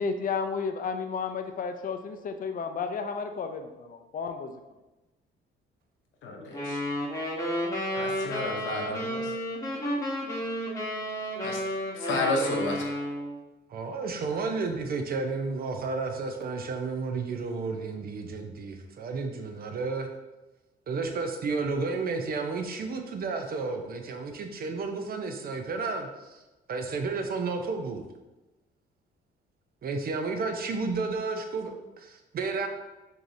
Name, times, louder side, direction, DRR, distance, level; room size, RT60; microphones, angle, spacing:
voice 1, 0.0-4.5, left 5 dB, 45° left, 6 dB, 0.4 m, -32 dB
voice 2, 6.2-6.8 7.9-9.3 11.4-11.6 11.9-12.9, left 2 dB, 75° left, 2 dB, 0.7 m, -31 dB
sound 1, 6.5-13.4, equal, 15° left, 1.0 m, -32 dB
voice 3, 13.7-20.1 20.9-26.4 26.7-28.0 29.8-32.7, right 4 dB, 50° right, 5 dB, 0.5 m, -32 dB
4.6 x 2.7 x 2.6 m, 1.1 s
cardioid pair, 90°, 20 cm